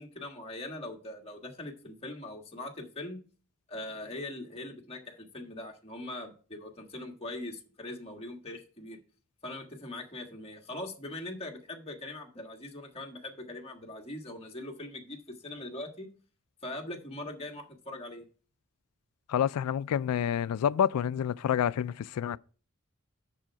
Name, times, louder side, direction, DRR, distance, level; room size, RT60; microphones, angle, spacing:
voice 1, 0.0-3.2 3.7-9.0 9.4-16.1 16.6-18.2, left 1 dB, 25° left, 1.5 m, -41 dB
voice 2, 19.3-22.4, left 9 dB, 85° left, 0.3 m, -28 dB
7.6 x 7.0 x 4.6 m
head